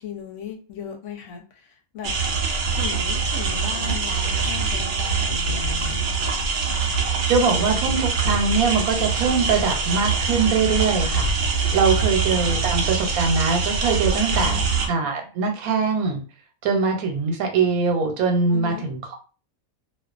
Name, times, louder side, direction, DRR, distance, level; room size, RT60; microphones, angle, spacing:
voice 1, 0.0-2.2 2.4-6.0 11.7-12.0 14.3-14.7 18.5-18.9, left 7 dB, 65° left, 3 dB, 0.9 m, -37 dB
sound 1, 2.0-14.9, right 4 dB, 70° right, 0.5 m, -24 dB
voice 2, 7.3-11.3 11.7-14.6 14.9-16.2 16.6-19.1, right 5 dB, 90° right, 4 dB, 1.1 m, -22 dB
2.4 x 2.3 x 2.4 m, 0.35 s
omnidirectional pair, 1.5 m